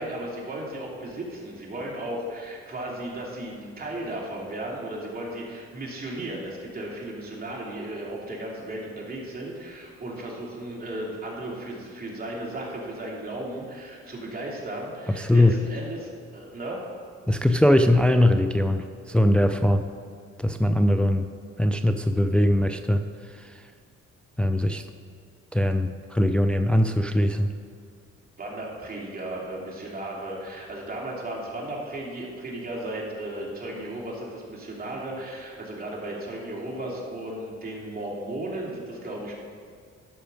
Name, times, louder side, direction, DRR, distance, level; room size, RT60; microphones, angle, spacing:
voice 1, 0.0-16.8 28.4-39.4, right 1 dB, 30° right, -3 dB, 2.8 m, -35 dB
voice 2, 15.2-15.5 17.3-19.8 20.4-21.3 21.6-23.0 24.4-24.8 25.5-27.5, left 1 dB, 5° left, 8 dB, 0.4 m, -21 dB
12.5 x 5.8 x 5.1 m, 2.2 s
cardioid pair, 90°, 30 cm